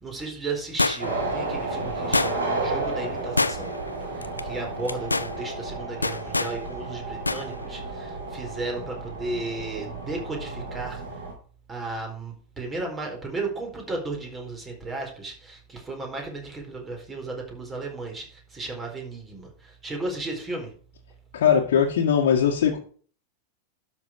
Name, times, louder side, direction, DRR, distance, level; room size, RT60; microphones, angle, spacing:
voice 1, 0.0-3.7 4.4-11.0 11.7-20.7, right 3 dB, 20° right, 4.4 m, -34 dB
sound 1, 0.8-1.3 2.1-2.6 3.4-3.9 4.2-4.4 4.9-5.3 6.0-6.6 7.3-7.5 7.8-7.9, left 3 dB, 80° left, 0.6 m, -25 dB
sound 2, 1.0-11.3, right 2 dB, 65° right, 4.3 m, -32 dB
voice 2, 21.3-22.8, left 8 dB, 60° left, 1.9 m, -20 dB
12.0 x 6.5 x 4.8 m
figure-of-eight pair, 90°, 0 cm